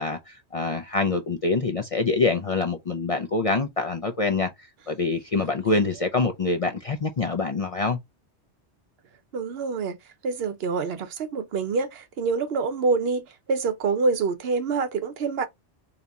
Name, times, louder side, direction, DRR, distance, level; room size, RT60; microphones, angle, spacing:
voice 1, 0.0-8.0, left 3 dB, 45° left, 0.4 m, -25 dB
voice 2, 9.3-10.0 10.2-15.5, right 4 dB, 65° right, 0.8 m, -26 dB
4.0 x 2.8 x 3.4 m
omnidirectional pair, 1.1 m